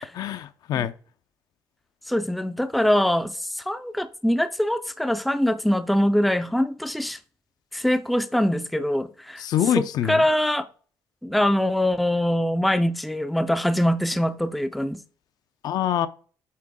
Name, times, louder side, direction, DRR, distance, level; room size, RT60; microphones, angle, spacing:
voice 1, 0.1-0.9 9.4-10.2 15.6-16.1, left 11 dB, 65° left, 0.5 m, -25 dB
voice 2, 2.1-7.2 7.7-9.4 9.8-10.7 11.2-15.0, left 1 dB, ahead, 0.4 m, -23 dB
8.6 x 3.8 x 3.6 m
cardioid pair, 145°, 7 cm